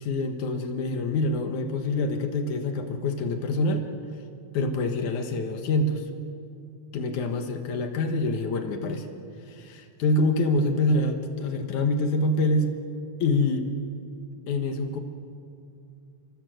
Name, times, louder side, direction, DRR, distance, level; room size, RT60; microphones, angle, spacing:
voice 1, 0.0-3.8 4.5-6.1 6.9-9.1 9.5-12.7 13.2-13.7 14.5-15.0, left 2 dB, 85° left, 4 dB, 1.6 m, -26 dB
26.0 x 25.0 x 7.9 m, 2.5 s
omnidirectional pair, 5.8 m